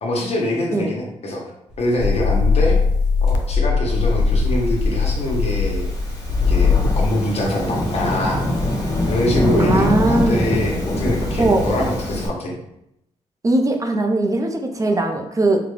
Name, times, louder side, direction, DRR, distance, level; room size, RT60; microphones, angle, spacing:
voice 1, 0.0-1.4 1.8-2.8 3.2-5.8 6.5-8.4 9.1-12.5, left 1 dB, 55° left, -1 dB, 1.0 m, -24 dB
sound 1, 1.7-11.9, right 1 dB, 5° right, 0.9 m, -34 dB
sound 2, 2.0-7.1, left 4 dB, 90° left, 0.4 m, -19 dB
Thunderstorm / Rain, 4.6-12.3, left 1 dB, 30° left, 1.1 m, -24 dB
voice 2, 9.6-10.5 11.4-11.7 13.4-15.7, right 2 dB, 25° right, 4 dB, 0.6 m, -20 dB
3.8 x 2.2 x 3.2 m, 0.82 s
cardioid pair, 75°, 13 cm